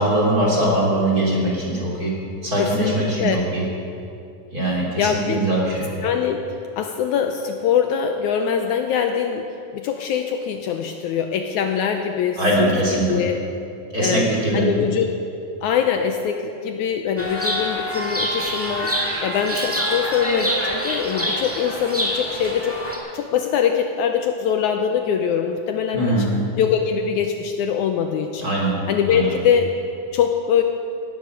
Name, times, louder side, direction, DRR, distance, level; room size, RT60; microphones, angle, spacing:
voice 1, 0.0-2.1 2.4-3.6 4.5-5.9 12.4-13.2 13.9-14.7 25.9-26.3 28.4-28.8 29.1-29.3, right 1 dB, 25° right, -4 dB, 3.2 m, -21 dB
voice 2, 2.6-3.4 4.7-5.4 6.0-6.5 6.8-13.4 14.0-15.2 15.6-22.8 23.1-26.1 26.6-28.5 28.9-29.8 30.1-30.6, left 7 dB, 75° left, 5 dB, 1.9 m, -23 dB
Chirp tweet, 17.2-23.0, equal, 10° right, 0.8 m, -26 dB
16.5 x 11.5 x 6.4 m, 2.5 s
omnidirectional pair, 3.8 m